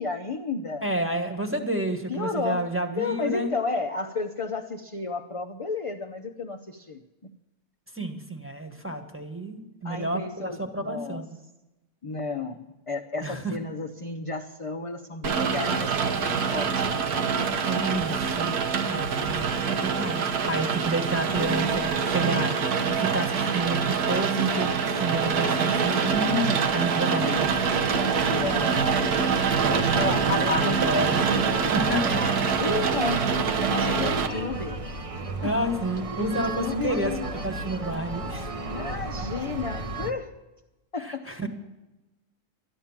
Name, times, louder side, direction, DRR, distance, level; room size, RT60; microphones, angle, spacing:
voice 1, 0.0-0.8 2.1-2.7 2.9-7.3 9.8-11.2 12.0-17.8 27.0-27.5 28.3-30.8 32.0-34.8 35.4-35.5 36.1-37.3 38.7-40.3 40.9-41.3, left 3 dB, 35° left, 3 dB, 0.5 m, -32 dB
voice 2, 0.8-3.5 7.9-11.3 13.2-13.6 17.6-18.5 18.9-22.6 22.8-27.5 28.6-28.8 29.8-32.2 33.7-34.5 35.4-38.5 41.0-41.5, right 1 dB, 10° right, 4 dB, 1.3 m, -30 dB
Rain, 15.2-34.3, right 6 dB, 80° right, 1.6 m, -25 dB
sound 1, 27.3-40.1, right 3 dB, 35° right, 0.6 m, -34 dB
13.0 x 11.0 x 7.2 m, 1.0 s
omnidirectional pair, 1.6 m